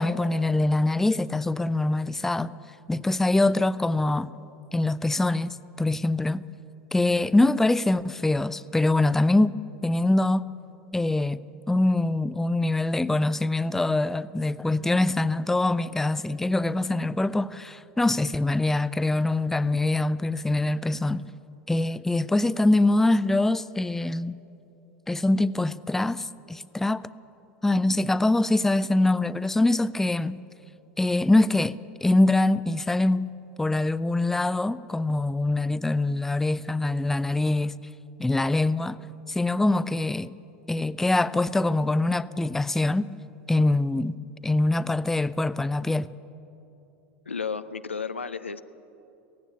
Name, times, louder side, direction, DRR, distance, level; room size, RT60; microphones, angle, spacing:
voice 1, 0.0-2.5 2.9-4.3 4.7-6.4 6.9-9.5 9.8-10.5 10.9-11.4 11.7-21.3 21.7-24.4 25.1-27.1 27.6-30.4 31.0-33.3 33.6-37.8 38.2-39.0 39.3-40.4 40.7-43.1 43.5-44.2 44.4-46.1, left 2 dB, 5° left, 0.4 m, -24 dB
voice 2, 47.3-48.6, left 5 dB, 80° left, 0.6 m, -32 dB
16.5 x 16.0 x 9.9 m
figure-of-eight pair, 80°, 6 cm